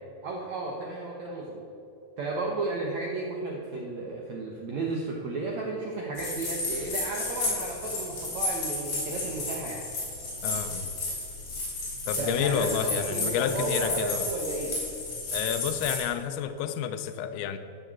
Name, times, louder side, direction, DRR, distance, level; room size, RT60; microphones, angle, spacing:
voice 1, 0.2-1.6 2.2-9.8 12.2-14.8, right 3 dB, 80° right, -1 dB, 1.6 m, -33 dB
sound 1, 6.2-16.0, left 2 dB, 50° left, 4.7 m, -32 dB
voice 2, 10.4-10.9 12.1-14.3 15.3-17.6, left 8 dB, 80° left, 8 dB, 2.4 m, -30 dB
12.5 x 7.0 x 7.2 m, 2.7 s
omnidirectional pair, 5.0 m